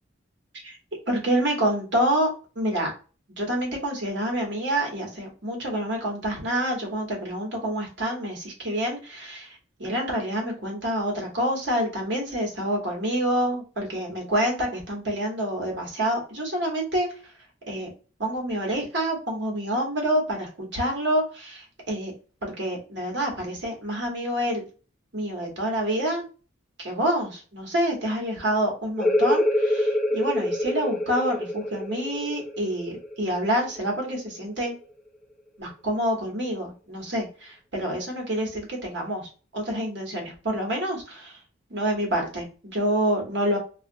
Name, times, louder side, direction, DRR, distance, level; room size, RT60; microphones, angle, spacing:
voice 1, 1.1-2.9 3.4-9.5 9.8-17.1 17.7-17.9 18.2-22.1 22.4-24.6 25.1-26.2 26.8-34.7 35.6-39.2 39.5-41.3 41.7-43.6, right 1 dB, 65° right, 0 dB, 1.2 m, -27 dB
sound 1, 29.0-34.4, left 1 dB, 5° left, 0.4 m, -26 dB
2.4 x 2.4 x 2.5 m, 0.35 s
head